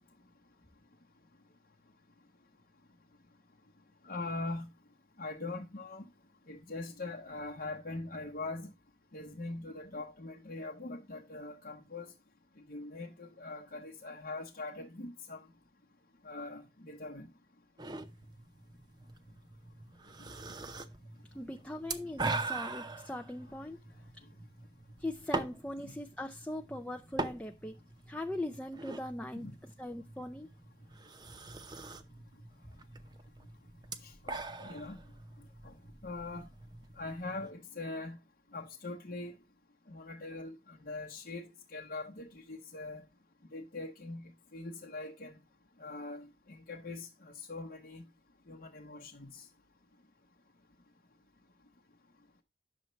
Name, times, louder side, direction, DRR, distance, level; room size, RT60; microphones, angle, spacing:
voice 1, 4.0-4.7 5.2-6.0 6.5-8.7 9.1-12.1 12.7-15.5 16.2-17.3 20.2-20.3 25.8-25.9 29.3-29.6 34.0-35.0 35.6-35.7 36.0-36.5 37.0-38.2 38.5-39.3 39.9-43.0 43.5-45.4 45.8-48.0 48.5-49.5, left 2 dB, 55° left, 0.8 m, -42 dB
sound 1, 17.8-37.5, right 3 dB, 25° right, 0.7 m, -43 dB
voice 2, 21.3-23.8 24.1-24.2 25.0-27.8 28.1-30.5, left 1 dB, 5° left, 0.4 m, -40 dB
9.3 x 6.7 x 3.1 m
head